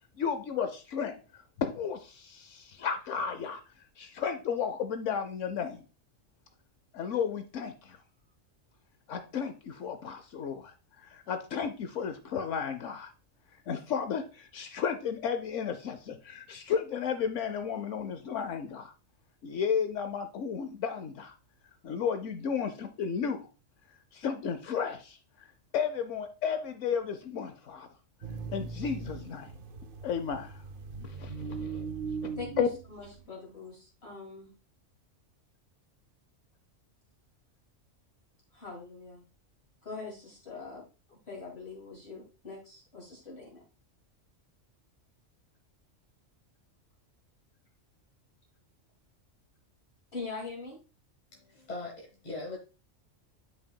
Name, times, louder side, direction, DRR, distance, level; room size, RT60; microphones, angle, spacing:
voice 1, 0.2-5.8 6.9-8.0 9.1-13.1 13.7-18.9 19.4-21.3 21.8-23.5 24.1-25.5 25.7-27.9 28.5-29.5 30.0-30.6 31.0-31.9 32.2-32.7, left 7 dB, 75° left, 1.0 m, -33 dB
sound 1, 28.2-33.2, right 5 dB, 55° right, 0.7 m, -39 dB
voice 2, 32.4-34.5 38.5-39.2 39.8-40.8 41.1-43.6 50.1-50.8, left 4 dB, 55° left, 2.2 m, -43 dB
voice 3, 51.3-52.6, left 2 dB, 35° left, 1.5 m, -40 dB
9.7 x 5.8 x 2.2 m
omnidirectional pair, 1.3 m